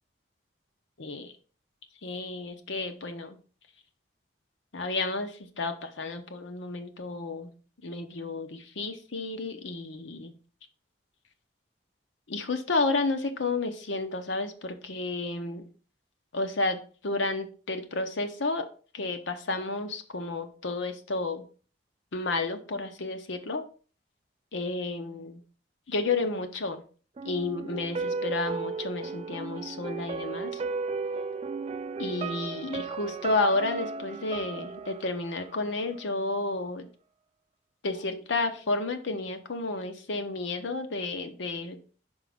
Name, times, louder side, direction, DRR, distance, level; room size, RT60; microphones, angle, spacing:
voice 1, 1.0-1.3 2.0-3.4 4.7-7.5 7.8-10.3 12.3-15.7 16.3-18.7 18.9-21.5 22.1-23.6 24.5-25.4 25.9-26.8 27.2-30.6 32.0-36.9 37.8-41.8, left 3 dB, 80° left, 7 dB, 0.8 m, -31 dB
sound 1, 27.2-36.1 36.5-36.6, right 4 dB, 30° right, 0.3 m, -35 dB
5.3 x 5.1 x 3.5 m, 0.40 s
head